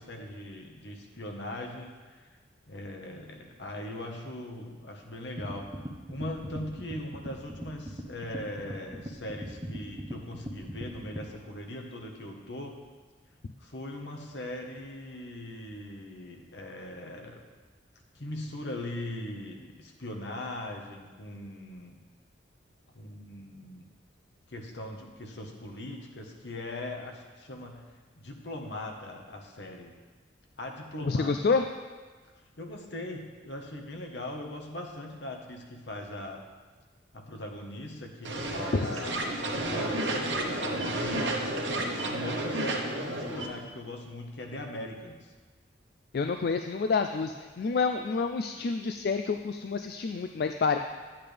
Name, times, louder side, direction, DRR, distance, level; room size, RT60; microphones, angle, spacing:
voice 1, 0.0-2.3 2.7-5.7 6.1-12.8 13.6-17.4 18.1-22.0 22.9-23.9 24.5-27.8 28.2-29.9 30.6-31.3 32.6-36.4 37.1-45.3, left 1 dB, 75° left, 2 dB, 1.3 m, -40 dB
sound 1, 5.4-11.3, equal, 20° right, 0.8 m, -40 dB
voice 2, 31.0-31.6 38.7-39.2 46.1-50.8, left 4 dB, 55° left, 7 dB, 0.3 m, -28 dB
sound 2, 38.2-43.5, right 1 dB, 80° right, 1.1 m, -31 dB
10.5 x 8.7 x 3.4 m, 1.4 s
head